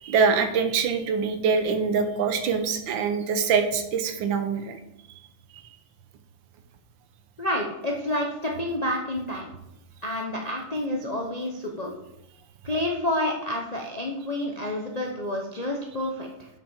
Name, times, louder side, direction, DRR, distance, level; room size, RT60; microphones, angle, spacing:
voice 1, 0.0-4.8, right 5 dB, 80° right, 8 dB, 1.5 m, -24 dB
voice 2, 7.4-9.5 10.0-11.9 12.6-16.5, left 1 dB, 40° left, 0 dB, 0.5 m, -29 dB
7.5 x 6.5 x 4.4 m, 0.88 s
omnidirectional pair, 2.1 m